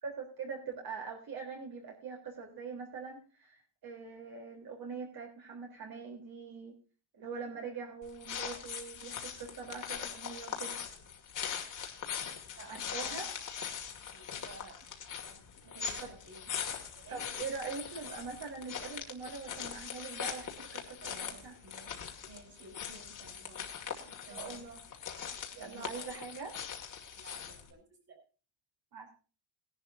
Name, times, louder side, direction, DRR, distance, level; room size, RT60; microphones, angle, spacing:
voice 1, 0.0-6.8 7.1-10.8 12.7-13.3 16.0-16.1 17.1-21.5 24.1-24.8 25.5-26.5 28.9-29.1, right 5 dB, 50° right, 0 dB, 3.5 m, -43 dB
sound 1, 8.0-27.7, left 7 dB, 40° left, 2.2 m, -41 dB
voice 2, 12.5-13.4 14.0-16.5 16.9-17.2 21.0-23.7 24.0-24.6 25.6-26.1 27.1-28.2, right 3 dB, 30° right, 5 dB, 5.2 m, -55 dB
19.0 x 11.5 x 2.6 m, 0.36 s
cardioid pair, 165°, 47 cm